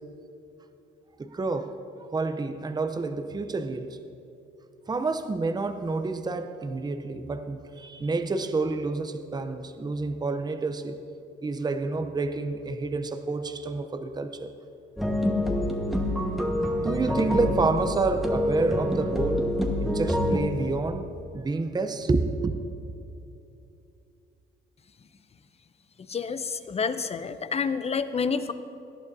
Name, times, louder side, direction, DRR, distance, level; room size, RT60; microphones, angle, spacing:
voice 1, 1.2-1.8 2.1-4.0 4.9-11.0 11.4-14.5 16.8-19.5 19.8-22.5, right 3 dB, 20° right, 0.7 m, -29 dB
sound 1, 15.0-20.4, left 1 dB, ahead, 1.3 m, -26 dB
voice 2, 26.1-28.5, left 5 dB, 30° left, 0.6 m, -28 dB
18.5 x 11.5 x 2.7 m
cardioid pair, 90°, 20 cm